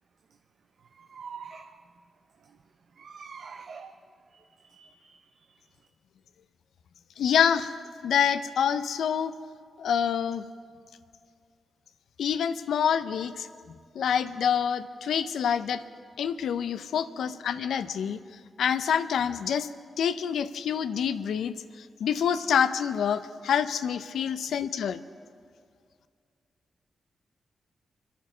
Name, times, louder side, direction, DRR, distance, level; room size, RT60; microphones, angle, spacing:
voice 1, 1.0-1.7 3.0-3.9 4.7-5.2, right 6 dB, 65° right, 6 dB, 0.7 m, -44 dB
voice 2, 7.2-7.7 8.0-9.4 9.8-10.4 12.2-13.5 13.9-15.8 16.2-18.2 18.6-19.7 20.0-21.5 22.0-25.0, left 8 dB, 85° left, 12 dB, 0.6 m, -26 dB
25.5 x 9.3 x 6.1 m, 2.2 s
cardioid pair, 65°, 0 cm